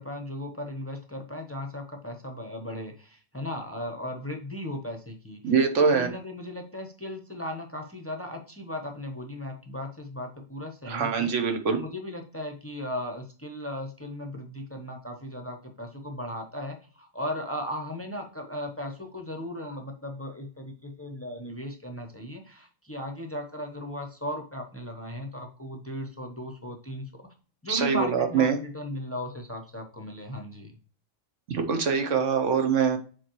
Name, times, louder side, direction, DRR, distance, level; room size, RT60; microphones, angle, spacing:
voice 1, 0.0-5.4 5.9-11.3 11.7-27.1 27.6-30.7, left 1 dB, 15° left, 3 dB, 0.7 m, -36 dB
voice 2, 5.4-6.1 10.8-11.8 27.7-28.6 31.5-33.0, right 6 dB, 65° right, 6 dB, 1.3 m, -24 dB
7.2 x 4.3 x 3.1 m, 0.39 s
omnidirectional pair, 1.4 m